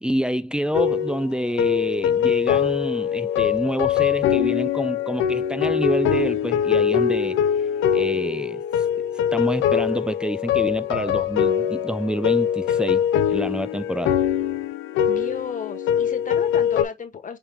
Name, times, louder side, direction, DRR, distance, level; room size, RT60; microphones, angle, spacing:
voice 1, 0.0-7.4 7.9-8.9 9.3-14.2, equal, 5° right, 0.3 m, -27 dB
sound 1, 0.7-16.8, left 9 dB, 90° left, 0.5 m, -22 dB
voice 2, 15.1-17.4, left 6 dB, 40° left, 1.5 m, -33 dB
5.0 x 3.4 x 2.9 m
cardioid pair, 90°, 20 cm